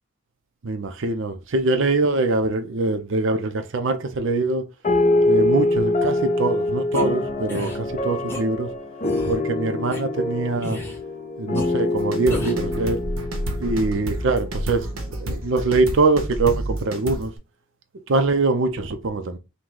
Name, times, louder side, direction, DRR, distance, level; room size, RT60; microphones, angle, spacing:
voice 1, 0.6-4.6 5.3-8.7 9.3-10.8 11.4-13.0 13.6-14.9 15.2-17.3 18.1-19.4, right 3 dB, 60° right, 0.6 m, -23 dB
sound 1, 4.8-14.6, left 2 dB, 35° left, 0.7 m, -24 dB
sound 2, 6.9-7.0 7.5-7.8 8.3-8.4 9.0-9.4 9.9-10.0 10.6-11.0 11.5-11.7 12.3-12.7, equal, 10° left, 1.1 m, -32 dB
sound 3, 12.0-17.3, right 1 dB, 80° right, 1.0 m, -29 dB
3.9 x 2.2 x 4.5 m
head